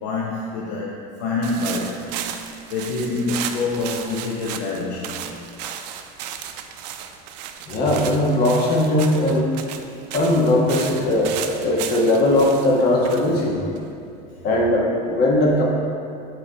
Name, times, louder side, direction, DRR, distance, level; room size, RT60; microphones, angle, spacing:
voice 1, 0.0-2.1 2.7-5.3, left 3 dB, 70° left, -3 dB, 0.7 m, -26 dB
sound 1, 1.4-14.2, right 9 dB, 85° right, 0.4 m, -35 dB
voice 2, 7.7-9.5 10.1-13.6 14.4-15.6, left 1 dB, 50° left, -2 dB, 1.3 m, -19 dB
8.6 x 3.1 x 3.9 m, 2.5 s
supercardioid pair, 135°, 20 cm